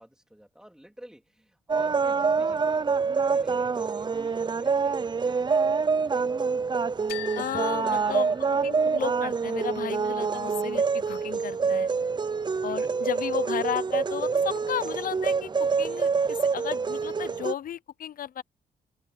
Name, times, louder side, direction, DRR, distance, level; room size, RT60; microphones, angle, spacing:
voice 1, 0.0-8.4 12.0-13.0, equal, 5° right, 2.9 m, -50 dB
sound 1, 1.7-17.5, right 5 dB, 25° right, 0.5 m, -26 dB
sound 2, 7.1-9.0, left 16 dB, 85° left, 2.2 m, -42 dB
voice 2, 7.4-8.3 8.6-11.9 12.6-18.4, left 10 dB, 60° left, 0.6 m, -34 dB
open air
cardioid pair, 70°, 16 cm